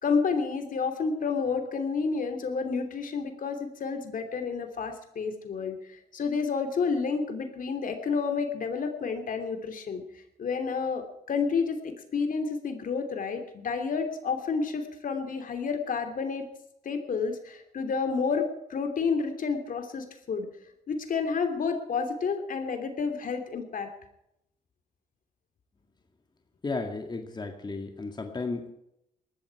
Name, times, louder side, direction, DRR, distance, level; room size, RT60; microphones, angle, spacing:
voice 1, 0.0-10.0 10.4-16.5 16.8-20.5 20.9-23.9, left 5 dB, 60° left, 6 dB, 3.0 m, -30 dB
voice 2, 26.6-28.7, left 3 dB, 30° left, 4 dB, 2.0 m, -34 dB
19.5 x 14.0 x 4.8 m, 0.80 s
cardioid pair, 80°, 16 cm